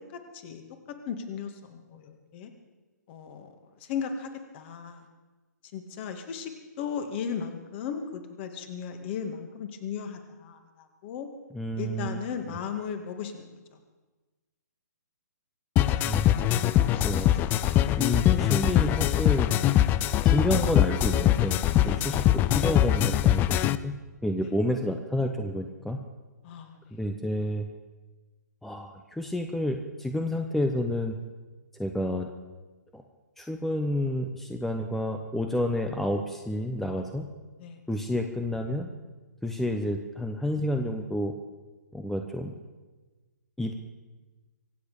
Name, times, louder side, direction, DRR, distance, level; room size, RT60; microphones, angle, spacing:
voice 1, 0.1-0.6 0.9-2.5 3.1-3.5 3.8-5.1 5.7-11.3 11.8-13.8 15.9-16.7 21.8-22.0 24.4-24.5 26.4-27.0 37.6-37.8, left 7 dB, 40° left, 6 dB, 2.1 m, -37 dB
voice 2, 11.5-12.2 16.0-16.7 17.0-17.3 18.0-19.5 20.2-21.6 21.8-23.9 24.2-26.0 26.9-27.7 28.6-31.2 31.8-32.3 32.9-33.0 33.4-37.2 37.9-38.9 39.4-41.3 41.9-42.5 43.6-43.7, left 1 dB, ahead, 4 dB, 0.9 m, -30 dB
sound 1, 15.8-23.8, left 12 dB, 20° left, 0.5 m, -23 dB
24.5 x 8.3 x 6.8 m, 1.2 s
hypercardioid pair, 135°, 9 cm